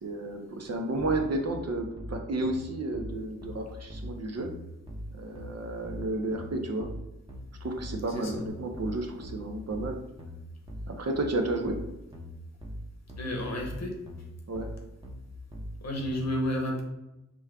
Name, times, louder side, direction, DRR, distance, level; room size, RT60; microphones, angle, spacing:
voice 1, 0.0-4.5 5.1-6.9 7.6-10.0 10.9-11.8 14.5-14.7, right 2 dB, 55° right, 3 dB, 0.7 m, -32 dB
sound 1, 1.0-16.2, equal, 15° right, 0.9 m, -41 dB
voice 2, 8.1-8.4 13.2-14.0 15.8-16.8, left 1 dB, 60° left, 1 dB, 1.0 m, -31 dB
5.0 x 2.3 x 3.6 m, 0.95 s
wide cardioid pair, 85°, 31 cm